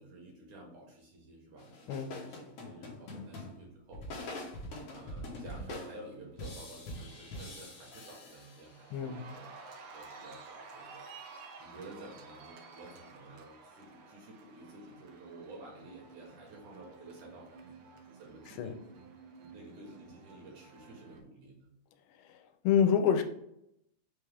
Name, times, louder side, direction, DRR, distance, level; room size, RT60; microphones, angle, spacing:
voice 1, 0.0-4.3 4.9-9.5 9.7-11.0 11.4-18.7 19.5-21.7, right 2 dB, 65° right, -2 dB, 2.2 m, -51 dB
sound 1, 1.6-9.0, left 1 dB, 75° left, 1.3 m, -44 dB
Cheering, 6.3-6.7 7.1-21.2, right 4 dB, 85° right, 1.7 m, -53 dB
voice 2, 22.6-23.2, left 8 dB, 90° left, 6 dB, 2.4 m, -26 dB
5.8 x 2.3 x 3.3 m, 0.78 s
omnidirectional pair, 4.1 m